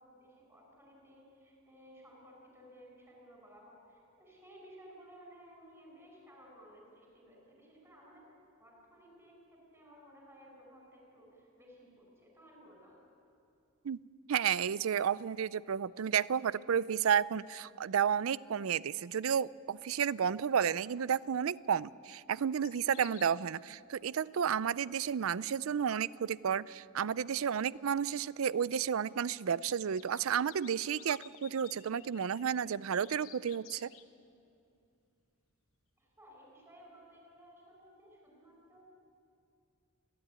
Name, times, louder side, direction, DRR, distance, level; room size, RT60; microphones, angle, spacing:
voice 1, 0.0-13.0 36.0-38.8, equal, 15° right, -1 dB, 5.4 m, -57 dB
voice 2, 14.3-33.9, right 8 dB, 75° right, 20 dB, 0.4 m, -32 dB
sound 1, 22.6-23.4 28.1-28.2 29.1-34.1, left 12 dB, 70° left, 1.0 m, -55 dB
30.0 x 12.0 x 9.6 m, 2.5 s
head